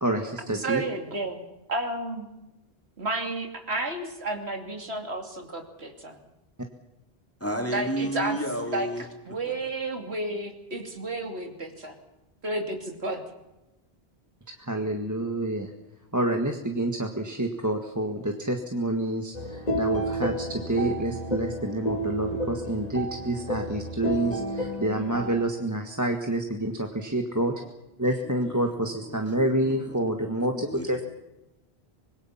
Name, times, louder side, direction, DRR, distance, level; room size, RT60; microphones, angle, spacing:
voice 1, 0.0-0.8 14.6-15.7 16.1-27.5 28.0-31.0, right 1 dB, 15° right, 2 dB, 1.7 m, -28 dB
voice 2, 0.5-1.4 1.7-2.3 3.0-6.2 7.7-8.4 8.7-12.0 12.4-13.2, right 2 dB, 80° right, 4 dB, 3.1 m, -32 dB
voice 3, 7.4-9.0 9.6-9.7 28.6-28.7 29.0-30.0 30.7-31.0, equal, 15° left, 1 dB, 3.9 m, -32 dB
sound 1, 19.3-25.5, right 1 dB, 40° left, 2.0 m, -31 dB
25.0 x 21.5 x 5.8 m, 0.96 s
omnidirectional pair, 1.1 m